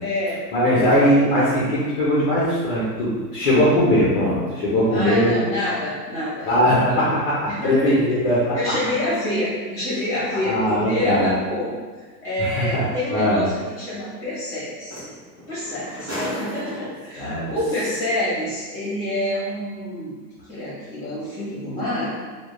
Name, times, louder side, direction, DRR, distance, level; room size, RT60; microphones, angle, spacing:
voice 1, 0.0-1.0 4.9-7.1 7.5-8.2 8.5-11.7 12.2-15.0 15.5-20.1 20.5-22.1, left 1 dB, 5° left, -10 dB, 0.9 m, -27 dB
voice 2, 0.5-5.4 6.4-8.6 10.4-11.3 12.4-13.4 17.2-17.5, equal, 35° left, -8 dB, 0.4 m, -20 dB
sound 1, 12.7-12.9 14.6-14.7 14.9-17.2 18.1-18.2, equal, 25° right, 0.9 m, -33 dB
2.3 x 2.1 x 2.9 m, 1.4 s
hypercardioid pair, 160°, 50 cm